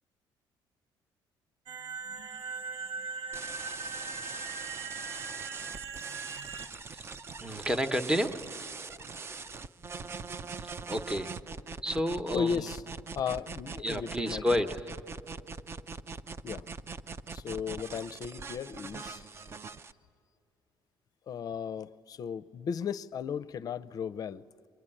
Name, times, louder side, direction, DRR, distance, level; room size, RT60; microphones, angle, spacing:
sound 1, 1.7-6.7, right 5 dB, 85° right, 0.9 m, -40 dB
sound 2, 3.3-19.9, right 4 dB, 30° right, 0.5 m, -42 dB
voice 1, 7.4-8.7 10.6-11.3 11.8-12.7 13.8-14.8, equal, 10° right, 9 dB, 0.9 m, -31 dB
voice 2, 12.3-12.8 13.2-14.6 16.4-16.7 17.3-19.3 21.3-24.4, left 7 dB, 45° left, 16 dB, 0.5 m, -35 dB
23.5 x 20.0 x 9.9 m, 2.5 s
cardioid pair, 130°, 9 cm